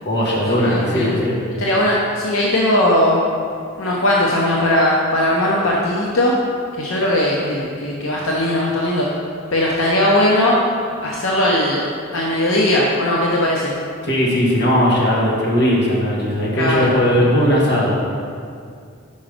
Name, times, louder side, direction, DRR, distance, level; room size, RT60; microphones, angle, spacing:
voice 1, 0.0-1.4 14.0-18.0, equal, 60° left, -5 dB, 1.5 m, -18 dB
voice 2, 0.6-1.1 1.6-3.2 3.8-6.4 6.8-9.1 9.5-10.6 11.0-11.9 12.1-13.7 16.6-17.0, left 1 dB, 85° left, -3 dB, 0.7 m, -18 dB
5.5 x 4.9 x 5.1 m, 2.2 s
head